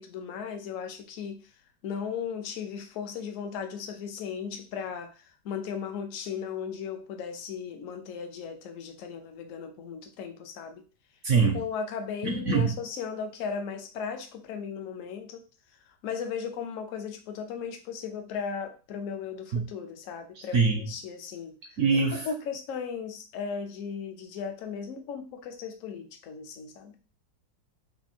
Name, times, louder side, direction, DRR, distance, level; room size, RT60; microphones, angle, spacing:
voice 1, 0.0-1.4 1.8-5.1 5.4-10.8 11.5-15.4 16.0-21.6 22.1-27.0, left 6 dB, 65° left, 6 dB, 0.8 m, -36 dB
voice 2, 11.2-11.6 12.2-12.8 19.5-19.7 20.4-20.9 21.8-22.3, right 4 dB, 65° right, 2 dB, 0.7 m, -24 dB
3.5 x 2.5 x 4.2 m, 0.35 s
omnidirectional pair, 1.9 m